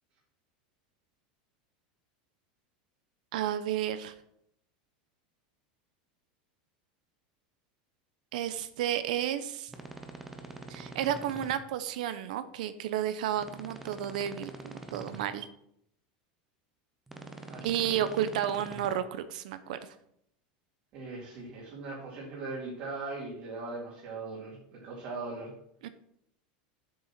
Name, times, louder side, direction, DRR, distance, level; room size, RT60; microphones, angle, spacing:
voice 1, 3.3-4.1 8.3-9.7 10.7-15.5 17.6-19.8 25.8-25.9, right 10 dB, 70° right, 12 dB, 0.8 m, -32 dB
sound 1, 9.7-11.5 13.4-15.2 17.1-18.9, right 2 dB, 5° right, 0.8 m, -45 dB
voice 2, 17.5-18.1 20.9-25.5, right 3 dB, 40° right, -5 dB, 2.6 m, -40 dB
7.9 x 6.7 x 6.0 m, 0.73 s
supercardioid pair, 175°, 5 cm